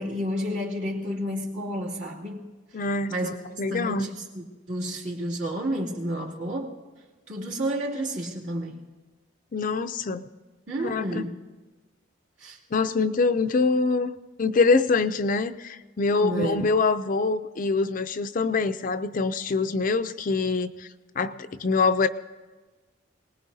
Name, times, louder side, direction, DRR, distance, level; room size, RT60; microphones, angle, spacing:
voice 1, 0.0-2.5 3.1-3.3 3.7-6.8 7.3-8.8 10.7-11.3 12.4-12.6 16.2-16.7, equal, 65° right, -4 dB, 2.7 m, -30 dB
voice 2, 2.7-4.1 9.5-10.3 10.8-11.2 12.7-14.1 14.4-20.9 21.2-22.1, left 4 dB, 45° left, 11 dB, 0.4 m, -24 dB
27.5 x 19.5 x 2.7 m, 1.3 s
head